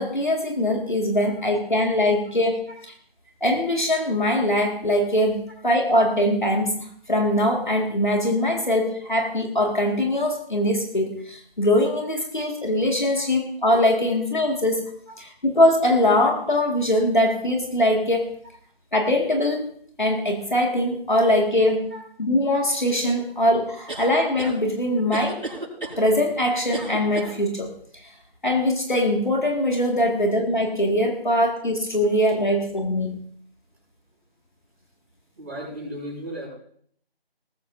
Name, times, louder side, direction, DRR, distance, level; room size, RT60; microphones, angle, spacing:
voice 1, 0.0-2.6 3.4-6.7 7.1-14.8 15.2-18.3 18.9-19.7 20.0-21.9 22.2-25.4 26.0-27.7 28.0-28.1 28.4-33.2, left 1 dB, 50° left, 2 dB, 1.9 m, -22 dB
sound 1, 23.9-24.6 25.1-26.0 26.7-27.4, right 2 dB, 55° right, 6.0 m, -33 dB
voice 2, 35.3-36.5, equal, 15° right, -9 dB, 5.3 m, -35 dB
19.5 x 14.5 x 2.6 m, 0.62 s
figure-of-eight pair, 180°, 31 cm